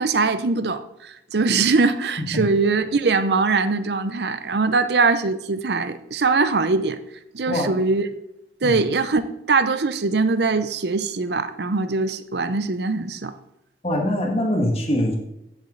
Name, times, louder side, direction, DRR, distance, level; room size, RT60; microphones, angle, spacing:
voice 1, 0.0-7.0 7.3-8.1 8.6-13.3, right 4 dB, 65° right, 11 dB, 0.7 m, -22 dB
voice 2, 13.8-15.2, left 1 dB, 35° left, 1 dB, 2.0 m, -23 dB
15.5 x 7.3 x 3.9 m, 0.84 s
head